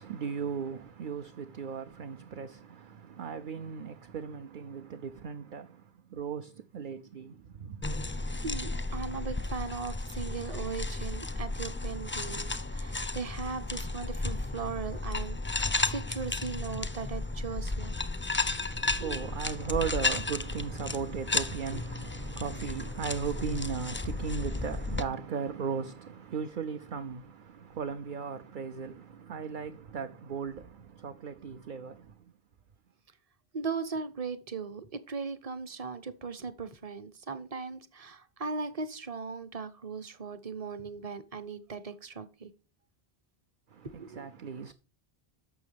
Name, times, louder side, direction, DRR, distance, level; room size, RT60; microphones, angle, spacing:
voice 1, 0.0-7.9 18.5-32.2 43.7-44.7, right 6 dB, 55° right, 0.7 m, -37 dB
sound 1, 7.8-25.0, left 3 dB, 15° left, 0.5 m, -33 dB
voice 2, 8.4-18.0 19.0-19.2 33.5-42.5 44.0-44.3, right 4 dB, 40° right, 1.0 m, -38 dB
11.5 x 7.0 x 3.4 m
omnidirectional pair, 1.1 m